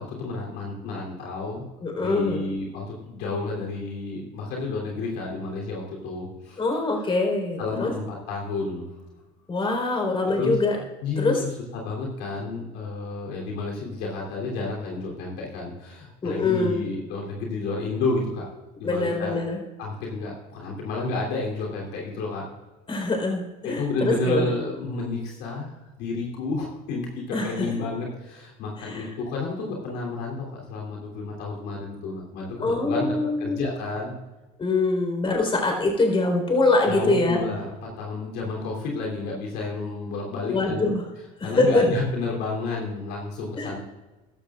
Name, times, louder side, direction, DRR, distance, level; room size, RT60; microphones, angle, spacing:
voice 1, 0.0-1.7 1.9-6.6 7.6-8.9 10.3-10.6 11.0-18.5 18.8-19.4 19.8-22.5 23.6-34.1 36.8-40.9 41.4-43.8, left 3 dB, 75° left, -2 dB, 3.2 m, -31 dB
voice 2, 1.8-2.4 6.6-7.9 9.5-10.8 11.2-11.4 16.2-16.8 18.8-19.6 22.9-24.5 27.3-27.7 28.8-29.0 32.6-33.6 34.6-37.4 40.5-41.0 41.4-41.9 43.6-43.7, left 2 dB, 30° left, 2 dB, 4.2 m, -24 dB
15.0 x 12.5 x 2.5 m, 1.1 s
supercardioid pair, 80°, 18 cm